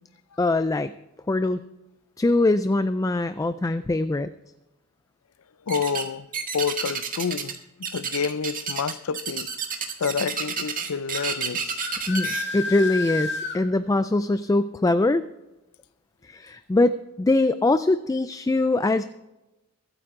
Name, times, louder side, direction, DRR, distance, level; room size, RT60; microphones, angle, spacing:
voice 1, 0.4-0.9 1.3-1.6 2.2-4.3 12.1-15.3 16.2-19.0, left 2 dB, 15° left, 0.3 m, -22 dB
voice 2, 5.7-6.3 6.5-7.6 7.9-9.5 10.0-11.8, left 6 dB, 75° left, 0.5 m, -28 dB
sound 1, 5.7-6.1 6.3-7.6 7.8-12.4, right 6 dB, 40° right, 1.7 m, -30 dB
sound 2, 11.1-11.4 11.8-13.6, left 3 dB, 55° left, 2.2 m, -30 dB
23.5 x 9.1 x 3.7 m
head